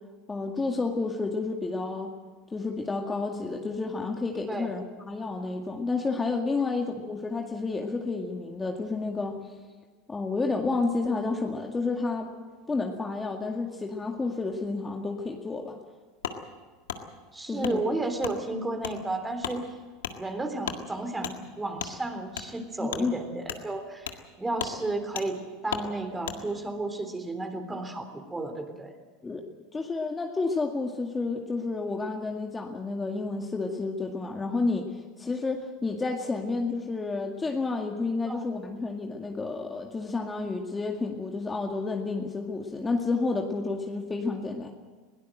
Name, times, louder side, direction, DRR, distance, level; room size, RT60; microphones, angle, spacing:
voice 1, 0.3-2.1 2.5-9.4 10.1-12.3 12.7-15.8 17.5-17.9 22.8-23.1 29.2-29.4 29.7-44.7, left 3 dB, 20° left, 2 dB, 2.1 m, -30 dB
Wood, 16.2-16.4 16.9-17.0 17.6-17.8 18.2-18.4 18.8-19.0 19.4-19.6 20.0-20.2 20.6-20.8 21.2-21.3 21.8-21.9 22.3-22.5 22.9-23.0 23.4-23.6 24.0-24.2 24.5-24.7 25.1-25.3 25.7-25.9 26.2-26.4, left 9 dB, 80° left, 1.8 m, -34 dB
voice 2, 17.3-19.6 20.2-24.1 24.4-28.9 38.2-38.4, right 2 dB, 15° right, 7 dB, 3.6 m, -33 dB
21.5 x 17.5 x 7.8 m, 1.4 s
hypercardioid pair, 85°, 0 cm